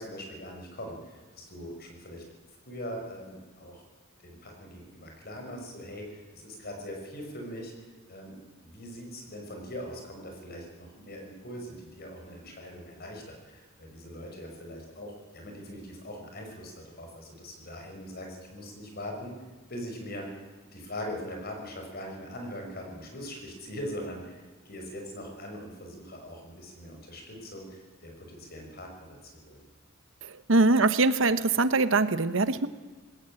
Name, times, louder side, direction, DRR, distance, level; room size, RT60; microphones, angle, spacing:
voice 1, 0.0-2.2 2.7-3.8 4.2-7.7 8.1-19.4 19.7-20.3 20.7-29.6, equal, 50° left, 2 dB, 5.9 m, -41 dB
voice 2, 30.5-32.7, right 3 dB, 70° right, 13 dB, 1.0 m, -22 dB
20.0 x 17.5 x 8.9 m, 1.3 s
head